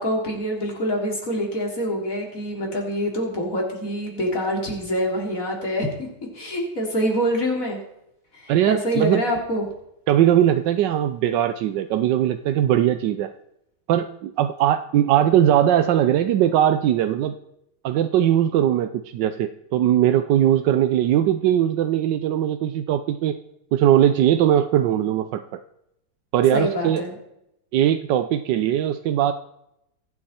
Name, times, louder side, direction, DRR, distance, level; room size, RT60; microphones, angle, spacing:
voice 1, 0.0-6.1 6.3-7.8 8.3-9.7 26.5-27.1, equal, 50° left, -1 dB, 3.9 m, -25 dB
voice 2, 8.5-9.2 10.1-13.3 13.9-17.4 17.8-23.4 23.7-25.6 26.3-27.0 27.7-29.3, right 11 dB, 85° right, 9 dB, 1.4 m, -20 dB
24.0 x 8.7 x 4.3 m, 0.82 s
omnidirectional pair, 1.9 m